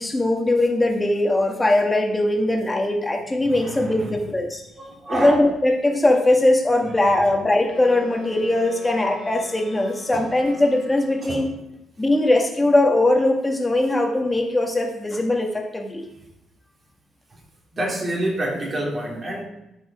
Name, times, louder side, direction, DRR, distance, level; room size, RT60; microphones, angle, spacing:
voice 1, 0.0-4.6 5.1-11.5 12.0-16.0, left 1 dB, 15° left, 3 dB, 1.7 m, -20 dB
voice 2, 3.4-4.3 4.8-5.4 7.0-7.2 10.1-10.2 11.2-11.4 17.3-17.4 17.7-19.4, right 1 dB, 35° right, -2 dB, 3.4 m, -28 dB
Wind instrument woodwind instrument, 7.6-11.7, left 5 dB, 60° left, 2.0 m, -43 dB
12.5 x 5.4 x 4.9 m, 0.87 s
cardioid pair, 90°, 0 cm